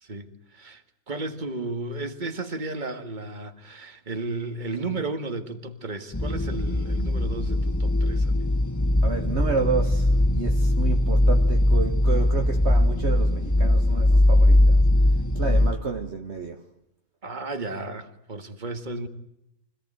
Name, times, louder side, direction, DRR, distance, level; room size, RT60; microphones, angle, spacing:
voice 1, 0.0-8.3 17.2-19.1, right 2 dB, 35° right, 1.9 m, -34 dB
sound 1, 6.1-15.7, left 1 dB, 15° left, 0.9 m, -20 dB
voice 2, 9.0-14.8 15.3-16.6, right 5 dB, 50° right, 1.5 m, -30 dB
25.5 x 17.0 x 9.0 m
omnidirectional pair, 1.5 m